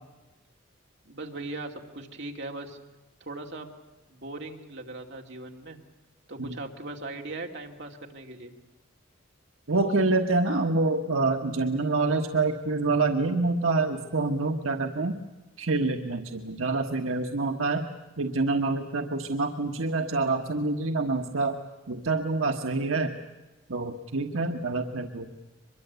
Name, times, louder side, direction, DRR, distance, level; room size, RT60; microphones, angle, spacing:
voice 1, 1.0-2.8 3.2-3.7 4.1-5.8 6.3-8.5, right 2 dB, 55° right, 2 dB, 2.6 m, -39 dB
voice 2, 9.7-15.2 15.6-17.9 18.2-21.6 21.9-23.1 23.7-25.3, right 3 dB, 80° right, 3 dB, 1.4 m, -26 dB
23.5 x 22.5 x 8.2 m, 1.1 s
head